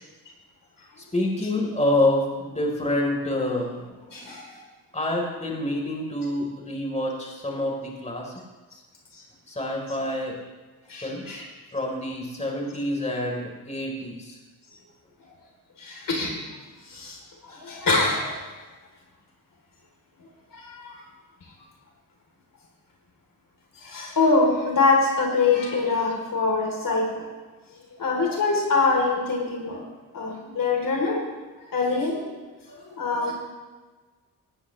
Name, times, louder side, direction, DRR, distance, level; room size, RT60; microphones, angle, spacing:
voice 1, 1.1-4.3 4.9-8.3 9.5-10.4 11.0-11.4 11.7-14.4, left 1 dB, 15° left, -1 dB, 3.8 m, -27 dB
voice 2, 4.1-4.6 9.1-9.2 10.9-11.4 15.8-16.3 16.9-17.2 17.4-18.4 20.5-21.0 23.8-27.3 27.9-29.8 30.1-31.2 31.7-32.2 32.7-33.4, left 3 dB, 55° left, -1 dB, 3.5 m, -24 dB
18.0 x 12.5 x 3.2 m, 1.3 s
cardioid pair, 70°, 39 cm